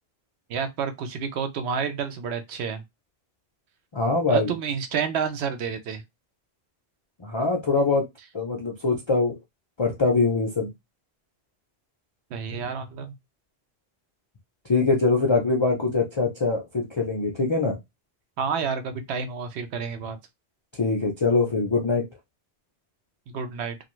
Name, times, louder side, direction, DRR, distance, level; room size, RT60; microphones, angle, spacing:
voice 1, 0.5-2.8 4.3-6.0 12.3-13.1 18.4-20.2 23.3-23.8, right 6 dB, 80° right, 0.9 m, -29 dB
voice 2, 3.9-4.5 7.2-8.1 8.3-9.4 9.8-10.7 14.7-17.8 20.8-22.1, left 3 dB, 50° left, 0.3 m, -23 dB
2.5 x 2.3 x 3.0 m
omnidirectional pair, 1.1 m